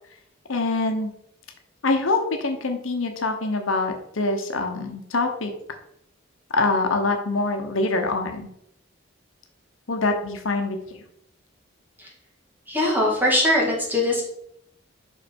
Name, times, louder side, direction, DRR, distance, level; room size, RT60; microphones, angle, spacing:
voice 1, 0.5-1.1 1.8-5.5 6.5-8.5 9.9-10.8, left 3 dB, 85° left, 5 dB, 1.0 m, -24 dB
voice 2, 12.7-14.2, left 1 dB, 10° right, -3 dB, 1.9 m, -21 dB
5.8 x 5.4 x 4.4 m, 0.75 s
head